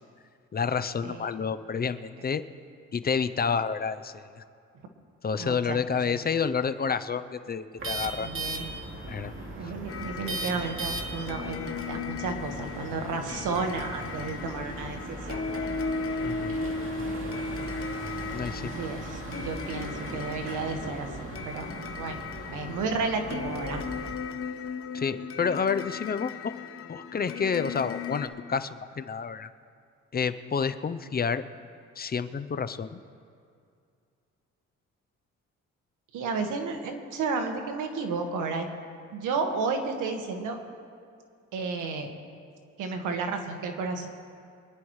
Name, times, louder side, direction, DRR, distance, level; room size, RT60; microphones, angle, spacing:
voice 1, 0.5-2.4 2.9-4.4 5.2-8.3 9.1-9.3 16.2-16.6 18.3-18.7 24.9-26.5 26.9-29.5 30.1-31.4 32.0-33.0, left 6 dB, 30° left, 12 dB, 0.6 m, -29 dB
voice 2, 5.4-6.2 8.2-8.7 9.5-15.7 18.6-21.1 21.4-21.7 22.0-22.2 22.5-23.8 36.1-38.7 39.1-40.6 41.5-42.1 42.8-44.1, right 4 dB, 85° right, 4 dB, 1.6 m, -32 dB
sound 1, 7.8-24.1, right 2 dB, 45° right, 2.6 m, -38 dB
sound 2, 9.9-28.3, left 4 dB, 45° left, 1.0 m, -37 dB
25.5 x 10.5 x 3.2 m, 2.3 s
cardioid pair, 90°, 30 cm